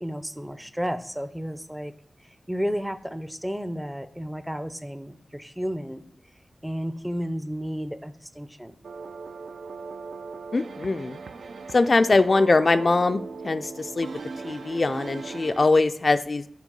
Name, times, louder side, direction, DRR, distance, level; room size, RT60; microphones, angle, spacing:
voice 1, 0.0-1.9 2.5-6.0 6.6-8.7, equal, 5° right, 12 dB, 0.5 m, -32 dB
sound 1, 8.8-15.7, right 4 dB, 75° right, 0.5 m, -38 dB
voice 2, 10.5-11.2 11.7-14.1 14.4-16.5, left 3 dB, 45° left, 10 dB, 0.3 m, -22 dB
6.2 x 4.7 x 5.2 m, 0.68 s
wide cardioid pair, 75°, 0 cm